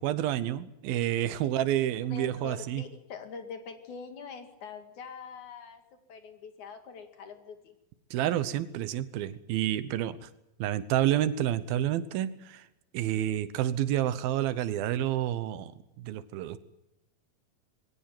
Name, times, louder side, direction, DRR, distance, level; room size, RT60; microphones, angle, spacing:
voice 1, 0.0-2.8 8.1-10.3 10.6-12.6 12.9-15.7 16.0-16.6, right 12 dB, 85° right, 14 dB, 2.9 m, -29 dB
voice 2, 2.1-5.8 6.1-7.6, left 5 dB, 60° left, 7 dB, 3.3 m, -43 dB
21.0 x 17.0 x 9.2 m, 0.91 s
omnidirectional pair, 4.2 m